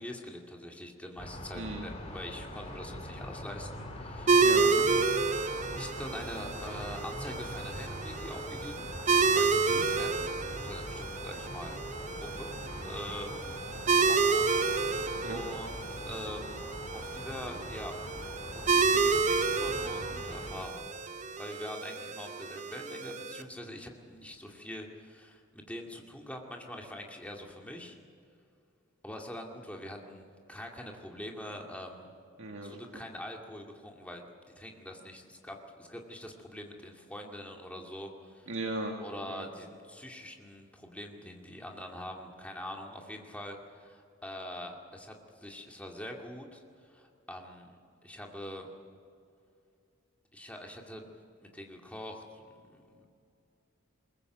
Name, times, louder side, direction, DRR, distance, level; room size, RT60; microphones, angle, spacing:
voice 1, 0.0-4.5 5.7-8.9 9.3-10.3 10.6-11.8 12.1-13.7 13.9-14.6 15.3-18.0 18.4-20.9 21.4-28.0 29.0-32.1 32.6-34.2 34.6-38.5 39.0-48.7 50.3-51.1 51.4-53.1, left 1 dB, 5° left, 1 dB, 2.2 m, -44 dB
sound 1, 1.2-20.7, left 1 dB, 30° left, 2.6 m, -43 dB
voice 2, 1.5-1.9 4.4-5.1 9.7-9.9 15.2-15.4 32.4-32.8 38.5-39.0 39.3-39.5, right 2 dB, 65° right, 1 dB, 2.0 m, -37 dB
sound 2, 4.3-23.4, right 4 dB, 35° right, 0.9 m, -30 dB
22.0 x 20.0 x 8.0 m, 2.5 s
head